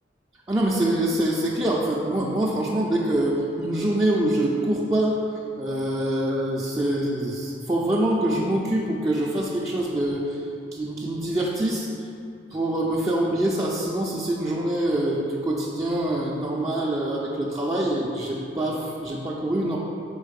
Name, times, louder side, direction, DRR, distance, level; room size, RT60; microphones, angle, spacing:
voice 1, 0.5-5.2 5.6-10.4 10.7-11.9 12.5-19.8, right 1 dB, 15° right, -4 dB, 0.5 m, -25 dB
5.4 x 4.0 x 5.1 m, 2.6 s
head